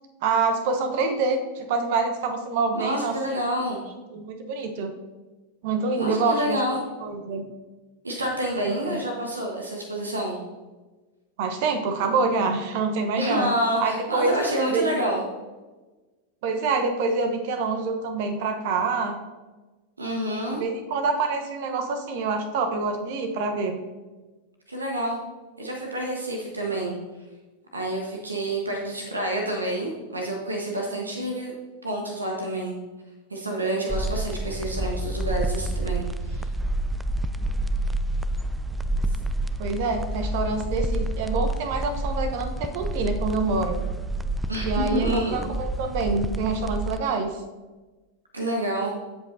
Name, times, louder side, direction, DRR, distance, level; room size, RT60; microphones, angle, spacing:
voice 1, 0.2-3.4 4.1-4.9 5.6-6.6 7.0-7.5 8.6-9.0 11.4-13.5 13.8-14.3 14.7-15.0 16.4-19.2 20.5-23.8 39.6-43.8 44.6-47.4, right 4 dB, 50° right, 6 dB, 1.0 m, -26 dB
voice 2, 2.7-3.8 6.0-6.8 8.0-10.4 13.2-15.2 20.0-20.6 24.7-25.2 25.6-26.9 27.7-31.5 31.8-32.7 33.3-36.5 44.5-45.4 48.3-48.9, right 1 dB, 80° right, 0 dB, 1.3 m, -28 dB
sound 1, 33.9-47.0, right 1 dB, 5° right, 0.3 m, -28 dB
15.0 x 5.3 x 2.7 m, 1.2 s
figure-of-eight pair, 90°, 0 cm